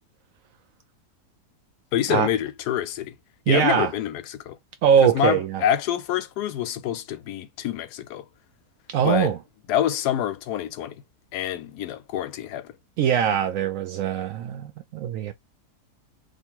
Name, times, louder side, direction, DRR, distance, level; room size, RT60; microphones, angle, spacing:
voice 1, 1.9-3.1 3.5-4.6 5.0-8.2 9.0-9.3 9.7-10.9 11.3-12.7, left 10 dB, 80° left, 1.2 m, -26 dB
voice 2, 3.5-3.9 4.8-5.6 8.9-9.4 13.0-15.3, right 8 dB, 70° right, 0.8 m, -22 dB
2.9 x 2.5 x 4.3 m
omnidirectional pair, 1.7 m